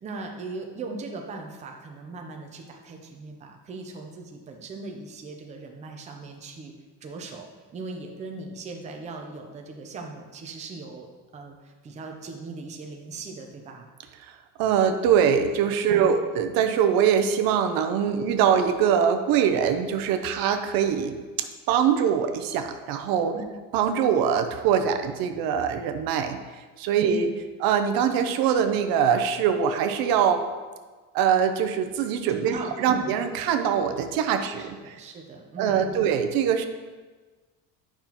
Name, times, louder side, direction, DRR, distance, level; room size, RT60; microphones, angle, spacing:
voice 1, 0.0-6.7 7.0-11.1 11.3-13.9 15.9-16.2 23.3-23.4 27.0-27.3 32.3-33.2 34.4-36.0, right 3 dB, 20° right, 2 dB, 0.6 m, -39 dB
voice 2, 14.6-21.2 21.7-23.3 23.7-26.4 26.8-27.3 27.6-30.4 31.1-35.0 35.6-36.7, right 8 dB, 70° right, 7 dB, 0.7 m, -23 dB
8.9 x 5.8 x 2.9 m, 1.3 s
cardioid pair, 165°, 37 cm